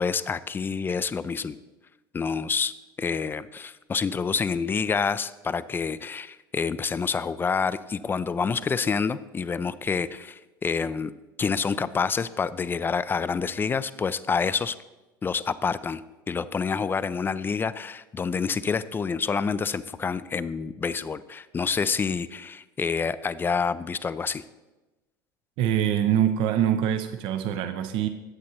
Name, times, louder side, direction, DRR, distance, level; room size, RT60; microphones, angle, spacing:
voice 1, 0.0-1.6 2.1-11.1 11.4-14.8 15.2-24.4, left 5 dB, 20° left, 16 dB, 0.3 m, -28 dB
voice 2, 25.6-28.1, right 10 dB, 50° right, 9 dB, 0.5 m, -24 dB
11.0 x 8.2 x 2.9 m, 1.1 s
figure-of-eight pair, 70°, 11 cm